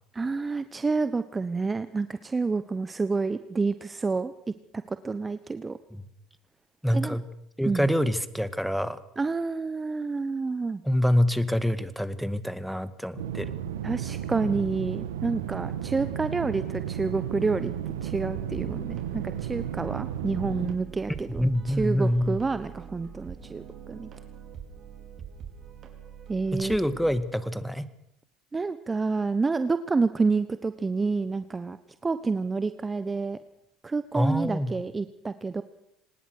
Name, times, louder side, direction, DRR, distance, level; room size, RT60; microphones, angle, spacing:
voice 1, 0.1-4.3 4.9-5.8 6.9-7.2 7.7-7.9 9.2-10.8 13.8-17.7 18.0-21.4 21.8-24.1 26.3-26.8 28.5-33.4 33.8-35.6, right 4 dB, 20° right, 12 dB, 1.1 m, -28 dB
voice 2, 6.8-7.3 7.6-9.0 10.8-13.5 21.3-22.4 26.5-27.9 34.1-34.7, equal, ahead, 13 dB, 2.0 m, -26 dB
sound 1, 13.2-20.7, right 10 dB, 80° right, 1.8 m, -33 dB
sound 2, 17.7-27.2, right 7 dB, 45° right, 4.9 m, -44 dB
26.0 x 19.5 x 6.4 m, 0.75 s
hypercardioid pair, 70°, 0 cm